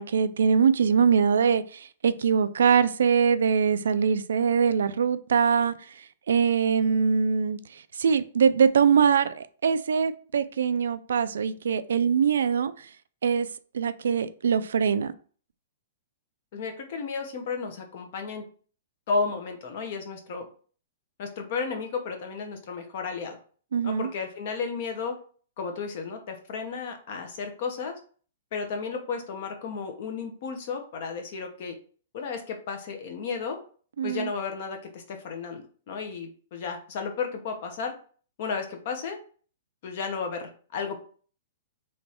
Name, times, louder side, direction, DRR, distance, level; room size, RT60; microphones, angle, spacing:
voice 1, 0.0-12.9 13.2-13.5 13.7-15.1 23.7-24.1 34.0-34.3, right 6 dB, 85° right, 0.4 m, -23 dB
voice 2, 16.5-18.4 19.1-20.5 21.2-23.4 23.8-25.2 25.6-27.9 28.5-31.8 32.1-33.6 34.0-37.9 38.4-39.2 39.8-41.0, left 5 dB, 45° left, 0.9 m, -33 dB
3.3 x 3.1 x 4.3 m
hypercardioid pair, 170°, 0 cm